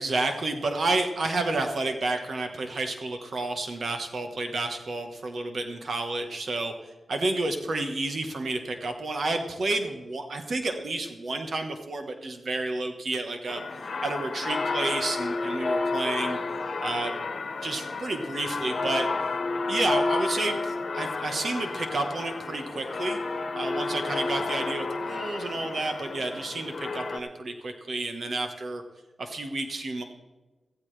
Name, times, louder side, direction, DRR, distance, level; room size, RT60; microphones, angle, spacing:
voice 1, 0.0-6.7 7.1-13.6 14.0-16.4 16.8-17.1 17.6-19.1 19.7-23.2 23.5-28.8 29.2-30.0, right 2 dB, 55° right, 5 dB, 1.2 m, -30 dB
sound 1, 13.5-27.2, left 3 dB, 55° left, 1.4 m, -31 dB
16.5 x 14.5 x 3.3 m, 1.2 s
wide cardioid pair, 130°, 0 cm